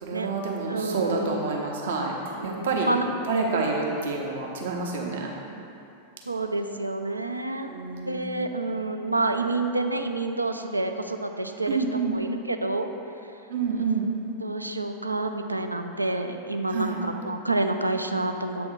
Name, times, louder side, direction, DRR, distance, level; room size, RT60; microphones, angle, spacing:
voice 1, 0.0-2.1 2.4-2.9 3.3-5.3 7.7-8.2 11.7-12.2 13.5-14.1 16.7-17.0, right 4 dB, 60° right, -1 dB, 0.8 m, -28 dB
voice 2, 0.7-1.4 2.3-3.5 6.3-7.8 8.1-12.9 13.7-13.8 14.4-18.7, right 2 dB, 85° right, 6 dB, 0.3 m, -28 dB
7.9 x 3.5 x 5.0 m, 2.7 s
figure-of-eight pair, 90°, 0 cm